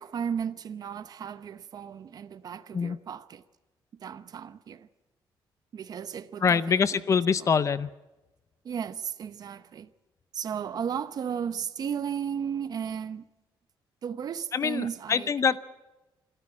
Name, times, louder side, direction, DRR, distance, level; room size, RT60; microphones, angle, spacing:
voice 1, 0.0-3.4 4.0-4.9 5.7-7.6 8.6-9.9 10.3-13.3 14.0-15.3, right 8 dB, 50° right, 0.8 m, -35 dB
voice 2, 6.4-7.9 14.5-15.6, left 6 dB, 35° left, 0.6 m, -24 dB
25.5 x 14.0 x 8.6 m
cardioid pair, 150°, 9 cm